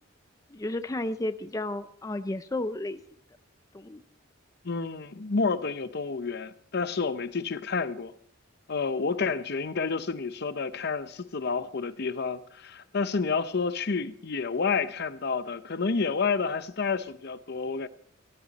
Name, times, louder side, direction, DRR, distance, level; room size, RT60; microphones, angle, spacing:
voice 1, 0.5-3.0 3.7-4.0, left 2 dB, 15° left, 0.4 m, -32 dB
voice 2, 4.6-8.1 8.7-17.9, left 4 dB, 55° left, 0.7 m, -29 dB
18.0 x 12.5 x 4.1 m
head